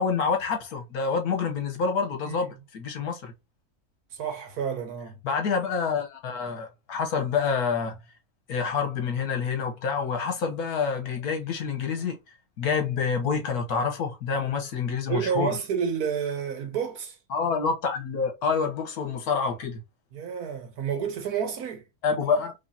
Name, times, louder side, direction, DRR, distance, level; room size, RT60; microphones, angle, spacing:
voice 1, 0.0-3.3 5.2-8.0 8.5-12.2 12.6-15.6 17.3-19.8 22.0-22.5, left 5 dB, 75° left, 1.5 m, -27 dB
voice 2, 4.1-5.2 15.1-17.2 20.1-21.8, right 7 dB, 75° right, 1.5 m, -30 dB
5.0 x 3.1 x 2.8 m
omnidirectional pair, 1.6 m